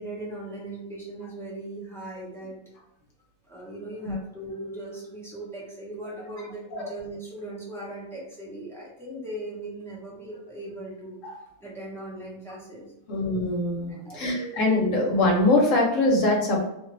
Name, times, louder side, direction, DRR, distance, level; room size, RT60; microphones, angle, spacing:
voice 1, 0.0-2.6 3.5-11.3 11.6-12.9 14.0-14.7, right 1 dB, ahead, -7 dB, 0.8 m, -39 dB
voice 2, 13.1-16.7, left 2 dB, 60° left, -1 dB, 1.1 m, -23 dB
2.8 x 2.4 x 3.1 m, 0.82 s
omnidirectional pair, 1.6 m